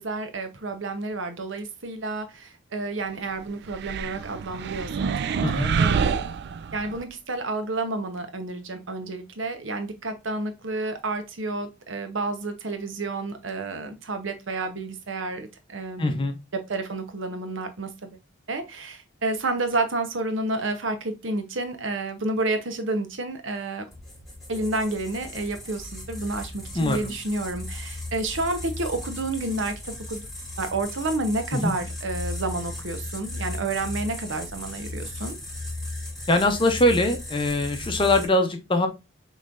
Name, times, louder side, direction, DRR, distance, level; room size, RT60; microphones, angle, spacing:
voice 1, 0.0-6.2 6.7-16.2 16.5-18.2 18.5-23.9 24.5-30.3 30.6-35.4, right 2 dB, 70° right, 0.9 m, -30 dB
sound 1, 3.7-7.0, right 6 dB, 55° right, 0.3 m, -27 dB
voice 2, 5.4-5.8 16.0-16.4 26.7-27.1 31.5-31.7 36.3-38.9, left 1 dB, 25° left, 0.7 m, -22 dB
sound 2, 23.9-38.3, left 2 dB, ahead, 1.6 m, -36 dB
5.5 x 3.2 x 2.5 m
head